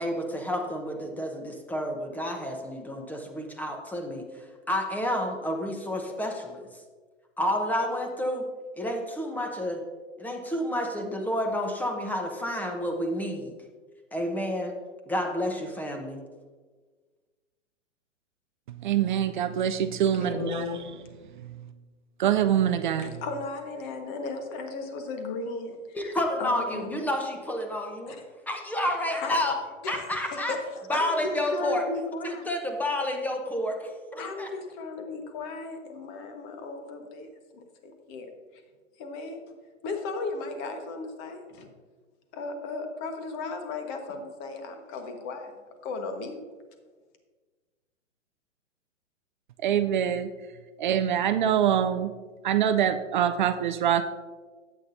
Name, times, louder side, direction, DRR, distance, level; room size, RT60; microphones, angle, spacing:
voice 1, 0.0-4.2 4.7-6.6 7.4-8.5 8.8-9.8 10.2-13.5 14.1-14.7 15.1-16.2 25.9-28.2 28.5-29.6 29.9-30.5 30.9-31.9 32.2-34.5, left 1 dB, 5° left, 3 dB, 0.9 m, -30 dB
voice 2, 18.7-20.7 21.4-21.5 22.2-23.2 49.6-50.3 50.8-52.1 52.4-54.0, right 9 dB, 40° right, 9 dB, 0.4 m, -25 dB
voice 3, 20.1-20.9 23.0-26.0 26.4-27.0 28.0-28.2 29.2-29.4 29.8-32.5 34.2-38.3 39.0-39.4 39.8-41.7 42.3-45.5 45.8-46.4, left 3 dB, 35° left, 5 dB, 1.4 m, -36 dB
12.5 x 8.7 x 2.6 m, 1.4 s
figure-of-eight pair, 115°, 37 cm